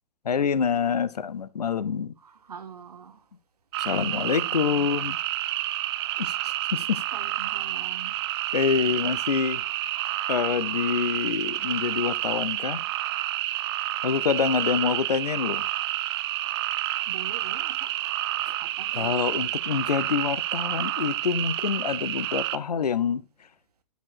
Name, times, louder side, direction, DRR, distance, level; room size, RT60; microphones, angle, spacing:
voice 1, 0.2-2.1 3.8-5.2 6.2-7.0 8.5-9.6 10.3-12.8 14.0-15.7 18.4-18.5 18.9-23.2, left 6 dB, 75° left, 0.8 m, -26 dB
voice 2, 2.2-3.2 4.0-4.9 6.9-8.2 9.8-10.0 17.1-17.9 18.6-19.4, right 7 dB, 70° right, 1.6 m, -43 dB
sound 1, 3.7-22.6, right 15 dB, 40° right, 0.7 m, -29 dB
12.5 x 5.1 x 4.6 m
figure-of-eight pair, 115°, 21 cm